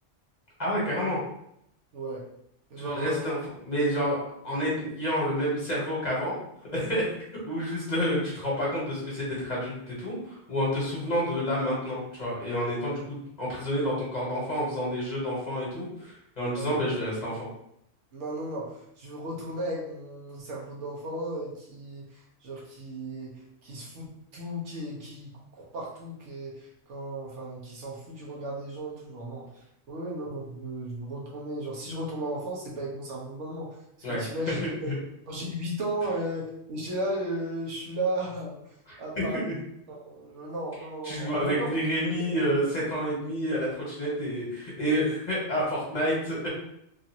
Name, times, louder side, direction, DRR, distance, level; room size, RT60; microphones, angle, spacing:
voice 1, 0.6-1.2 2.8-3.4 3.6-6.4 6.7-7.1 7.5-17.5 34.0-34.2 34.5-34.6 34.9-35.0 38.9-39.0 39.3-39.5 41.0-46.5, equal, 40° left, -6 dB, 1.1 m, -29 dB
voice 2, 1.9-2.3 2.7-3.2 16.6-16.8 18.1-23.3 23.6-24.0 24.3-25.3 25.6-29.5 29.9-33.7 34.1-34.9 35.3-38.6 39.0-39.6 39.9-41.7, right 1 dB, 80° right, -3 dB, 1.2 m, -35 dB
3.1 x 2.5 x 2.8 m, 0.75 s
omnidirectional pair, 1.2 m